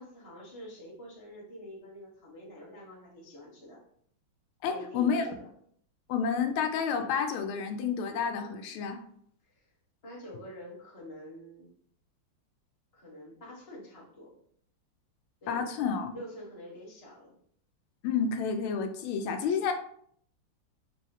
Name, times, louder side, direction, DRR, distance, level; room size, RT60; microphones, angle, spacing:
voice 1, 0.0-3.8 4.7-5.4 9.4-9.7 10.0-11.7 12.9-14.3 15.4-15.9 16.1-17.3, left 1 dB, 20° left, -4 dB, 0.9 m, -46 dB
voice 2, 4.6-5.3 6.1-9.0 15.5-16.2 18.0-19.7, left 6 dB, 85° left, 6 dB, 1.4 m, -30 dB
6.0 x 2.3 x 2.8 m, 0.64 s
omnidirectional pair, 2.3 m